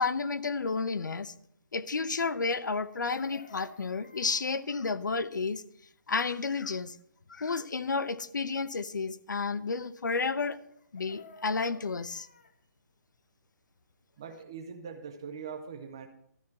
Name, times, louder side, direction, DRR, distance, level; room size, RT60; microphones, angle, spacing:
voice 1, 0.0-1.3 1.7-5.6 6.1-7.0 7.3-10.6 10.9-12.3, left 4 dB, 85° left, 15 dB, 0.7 m, -31 dB
Chicken rooster, 2.9-4.7 10.7-12.6 14.8-14.9 15.2-15.4, left 4 dB, 35° left, 0.7 m, -54 dB
voice 2, 14.2-16.1, right 6 dB, 15° right, 7 dB, 0.5 m, -42 dB
13.0 x 4.7 x 7.2 m, 0.70 s
hypercardioid pair, 175°, 10 cm